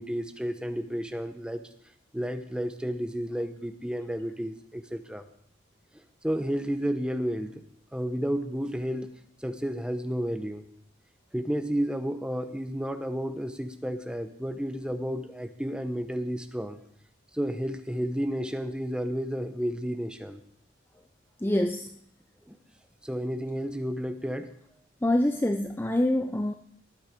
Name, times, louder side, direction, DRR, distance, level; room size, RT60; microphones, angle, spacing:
voice 1, 0.0-1.6 2.1-5.2 6.2-7.6 7.9-9.1 9.4-10.6 11.3-16.8 17.3-20.4 22.5-22.6 23.0-24.5, equal, 5° right, 8 dB, 0.9 m, -31 dB
voice 2, 21.4-22.0 25.0-26.5, left 1 dB, 10° left, 6 dB, 0.5 m, -25 dB
19.0 x 8.9 x 5.2 m, 0.69 s
head